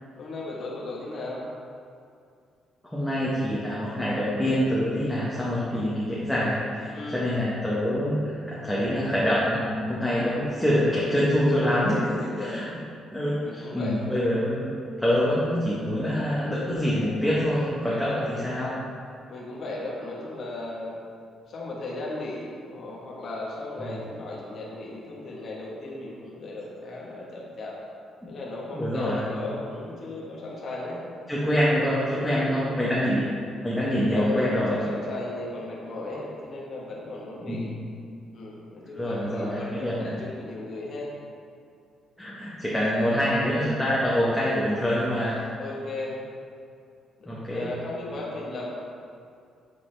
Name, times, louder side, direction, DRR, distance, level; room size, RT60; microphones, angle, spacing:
voice 1, 0.2-1.5 6.9-7.3 11.8-12.6 13.3-14.0 17.8-18.4 19.3-21.0 21.5-27.8 28.3-31.0 31.5-32.7 33.1-33.2 33.8-37.7 38.3-41.1 42.7-43.2 45.6-46.2 47.2-48.7, left 2 dB, 55° left, -4 dB, 1.3 m, -36 dB
voice 2, 2.8-12.0 12.4-12.6 13.1-14.7 15.0-18.8 23.8-24.0 28.7-29.3 31.3-33.2 33.6-34.8 37.4-37.8 39.0-40.2 42.2-45.4 47.3-47.8, equal, 5° left, -8 dB, 1.1 m, -25 dB
7.7 x 4.0 x 3.3 m, 2.3 s
cardioid pair, 90°, 0 cm